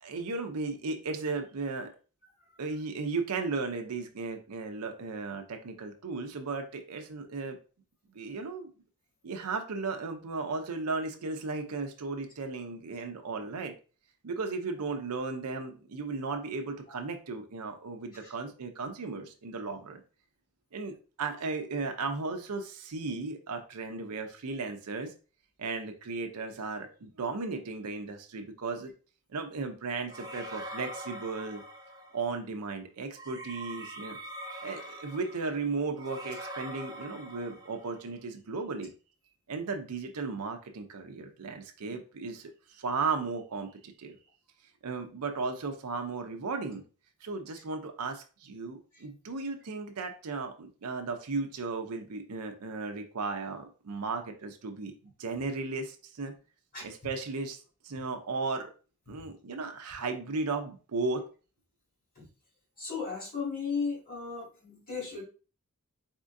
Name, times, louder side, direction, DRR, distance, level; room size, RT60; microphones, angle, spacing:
voice 1, 0.0-1.9 2.6-7.6 8.1-8.7 9.2-13.7 14.2-20.0 20.7-25.1 25.6-28.9 29.3-31.6 32.1-34.2 34.6-38.9 39.5-44.2 44.8-46.8 47.2-56.3 56.8-58.7 59.1-61.3, right 4 dB, 80° right, 5 dB, 0.6 m, -35 dB
sound 1, 30.1-32.3 33.1-38.0, right 1 dB, 15° right, 0.7 m, -43 dB
voice 2, 62.8-65.2, left 5 dB, 40° left, -3 dB, 2.1 m, -35 dB
4.3 x 3.6 x 2.5 m, 0.36 s
head